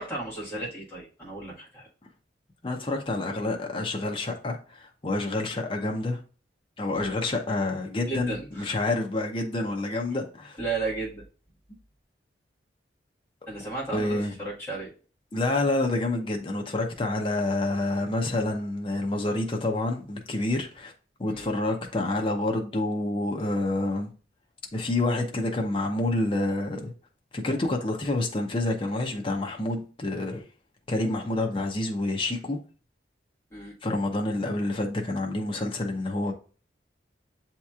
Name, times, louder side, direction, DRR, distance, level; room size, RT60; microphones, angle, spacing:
voice 1, 0.0-1.9 6.9-7.1 8.1-8.8 10.6-11.2 13.5-14.9 21.3-21.5 33.5-33.7, right 3 dB, 10° left, 1.4 m, -34 dB
voice 2, 2.6-6.2 6.8-10.6 13.9-14.3 15.3-20.9 21.2-24.1 24.7-26.9 27.3-30.4 30.9-32.6 33.8-36.3, left 2 dB, 30° left, 0.6 m, -28 dB
7.5 x 2.9 x 2.3 m
head